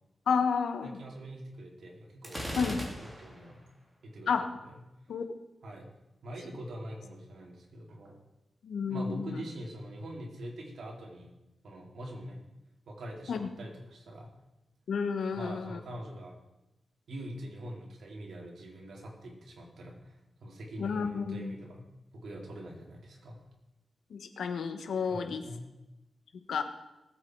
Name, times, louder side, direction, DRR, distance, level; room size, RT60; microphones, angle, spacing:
voice 1, 0.3-1.0 2.6-2.8 4.3-4.5 5.1-5.2 8.6-9.4 13.3-13.5 14.9-15.8 20.8-21.5 24.1-25.4 26.5-26.6, left 5 dB, 90° left, 8 dB, 1.2 m, -31 dB
voice 2, 0.8-3.6 4.0-4.7 5.6-5.9 6.2-8.2 8.9-11.4 11.6-12.4 12.9-14.3 15.3-16.3 17.1-21.8 22.1-23.4 25.1-25.7, right 1 dB, 75° right, -2 dB, 3.6 m, -44 dB
Gunshot gunfire, 2.2-3.5, equal, 10° right, 3.1 m, -38 dB
19.0 x 8.4 x 4.8 m, 0.96 s
wide cardioid pair, 120°, 0 cm